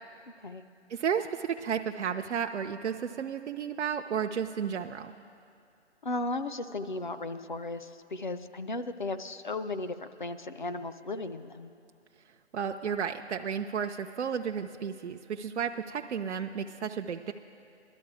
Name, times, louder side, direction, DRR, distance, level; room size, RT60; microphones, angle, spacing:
voice 1, 0.9-5.1 12.5-17.3, right 7 dB, 75° right, 4 dB, 0.6 m, -33 dB
voice 2, 6.0-11.7, left 2 dB, 45° left, 9 dB, 0.5 m, -35 dB
17.0 x 12.5 x 4.8 m, 2.4 s
hypercardioid pair, 170°, 35 cm